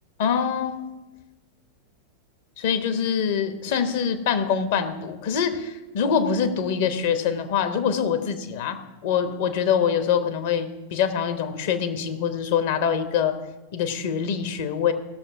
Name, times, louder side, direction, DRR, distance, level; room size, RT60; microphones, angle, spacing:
voice 1, 0.2-0.8 2.6-13.4 13.7-14.9, left 7 dB, 55° left, 9 dB, 1.1 m, -24 dB
16.0 x 6.8 x 5.6 m, 1.1 s
figure-of-eight pair, 90°, 0 cm